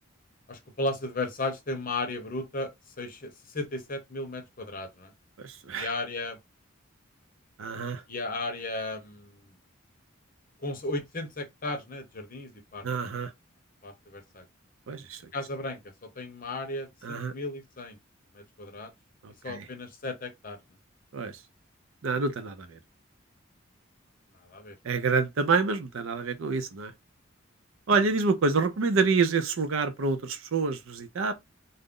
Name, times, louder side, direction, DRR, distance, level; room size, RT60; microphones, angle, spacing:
voice 1, 0.5-2.7 3.0-5.1 5.8-6.4 8.1-9.5 10.6-12.9 13.8-14.4 15.3-18.0 18.3-18.9 19.4-20.6 24.5-24.8, left 2 dB, 40° left, 0.7 m, -35 dB
voice 2, 5.4-5.9 7.6-8.0 12.8-13.3 14.9-15.3 17.0-17.3 19.2-19.7 21.1-21.4 22.0-22.8 24.8-26.9 27.9-31.3, right 4 dB, 70° right, 0.5 m, -27 dB
2.4 x 2.0 x 3.6 m
head